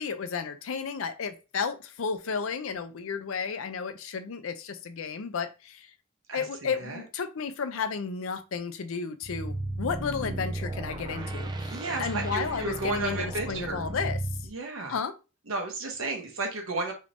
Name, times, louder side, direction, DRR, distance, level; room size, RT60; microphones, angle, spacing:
voice 1, 0.0-5.9 6.3-14.2 14.9-15.1, left 5 dB, 75° left, 0.5 m, -33 dB
voice 2, 6.3-7.0 11.7-13.8 14.5-15.0 15.5-16.9, right 3 dB, 80° right, 1.0 m, -33 dB
sound 1, 9.2-14.5, right 2 dB, 20° right, 0.3 m, -34 dB
3.1 x 2.6 x 3.3 m
head